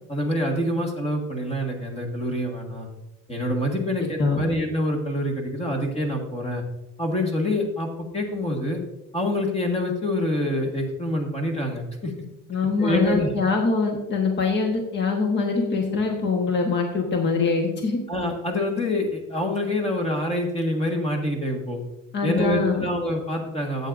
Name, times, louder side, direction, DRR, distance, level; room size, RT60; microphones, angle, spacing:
voice 1, 0.1-2.9 3.3-6.6 7.0-8.8 9.1-12.1 12.8-13.3 18.1-21.8 22.2-23.9, left 1 dB, 20° left, 1 dB, 1.6 m, -26 dB
voice 2, 12.5-18.0 22.1-22.9, left 4 dB, 35° left, 2 dB, 1.3 m, -23 dB
13.5 x 8.4 x 2.6 m, 0.92 s
cardioid pair, 150°, 32 cm